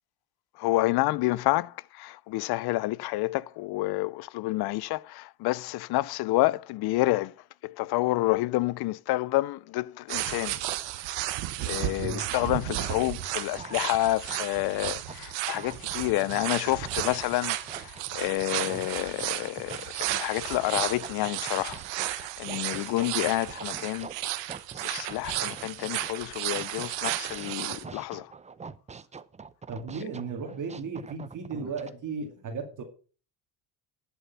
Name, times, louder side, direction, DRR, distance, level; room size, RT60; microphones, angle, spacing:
voice 1, 0.6-7.3 7.6-10.6 11.6-24.1 24.8-28.3, left 18 dB, 55° left, 0.6 m, -29 dB
sound 1, 10.1-27.8, right 15 dB, 65° right, 1.3 m, -33 dB
sound 2, 13.1-20.1 20.5-26.1 26.6-31.9, right 5 dB, 15° right, 0.6 m, -45 dB
Scratching (performance technique), 16.2-20.9, right 21 dB, 90° right, 0.8 m, -46 dB
voice 2, 29.7-32.8, right 5 dB, 40° right, 2.3 m, -35 dB
11.5 x 7.1 x 5.7 m
supercardioid pair, 95°, 46 cm